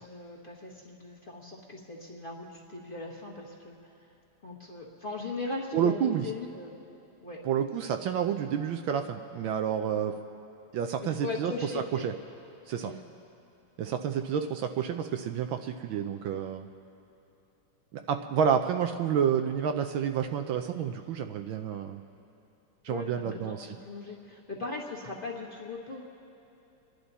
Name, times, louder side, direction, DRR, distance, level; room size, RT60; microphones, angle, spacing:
voice 1, 0.0-3.8 4.0-4.1 4.4-6.7 7.2-7.4 11.0-12.0 12.8-13.0 22.9-26.2, left 3 dB, 25° left, -3 dB, 1.5 m, -39 dB
voice 2, 5.7-6.2 7.4-10.1 10.7-12.1 12.7-12.9 13.8-16.7 18.1-22.0 22.8-23.7, right 8 dB, 75° right, 6 dB, 1.3 m, -29 dB
29.0 x 11.5 x 4.1 m, 2.9 s
omnidirectional pair, 2.4 m